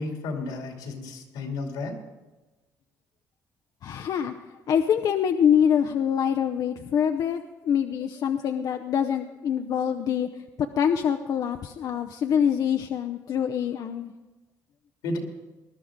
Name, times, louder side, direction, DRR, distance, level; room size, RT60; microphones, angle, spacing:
voice 1, 0.0-2.0 15.0-15.2, left 2 dB, 90° left, 2 dB, 2.7 m, -32 dB
voice 2, 3.8-4.3 4.7-10.3 10.6-14.1, left 8 dB, 60° left, 6 dB, 0.7 m, -25 dB
19.5 x 11.5 x 3.7 m, 1.2 s
cardioid pair, 90°, 7 cm